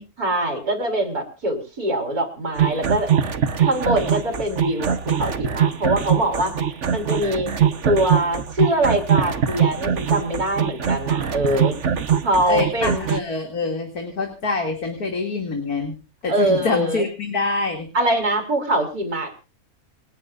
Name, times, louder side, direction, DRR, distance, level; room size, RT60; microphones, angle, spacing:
voice 1, 0.2-3.1 3.6-6.5 6.9-7.5 7.8-11.8 12.2-13.1 16.3-17.0 17.9-19.5, right 1 dB, 85° right, 4 dB, 5.1 m, -23 dB
sound 1, 2.6-13.2, right 8 dB, 55° right, 1.5 m, -22 dB
voice 2, 12.5-15.9 16.2-17.9, left 3 dB, 85° left, 3 dB, 3.3 m, -26 dB
29.0 x 10.0 x 2.6 m, 0.33 s
omnidirectional pair, 1.5 m